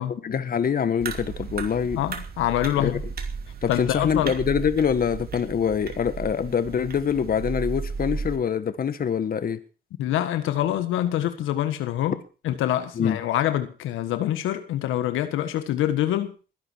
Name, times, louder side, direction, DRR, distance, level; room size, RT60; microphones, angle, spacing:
voice 1, 0.0-2.0 2.8-2.9 3.6-9.6 12.9-13.2, left 7 dB, 50° left, 1.7 m, -25 dB
sound 1, 1.0-8.4, right 5 dB, 50° right, 2.8 m, -34 dB
voice 2, 1.9-3.0 3.7-4.3 10.0-12.2 12.4-16.3, left 12 dB, 90° left, 1.7 m, -25 dB
21.0 x 11.0 x 4.7 m
cardioid pair, 90°, 20 cm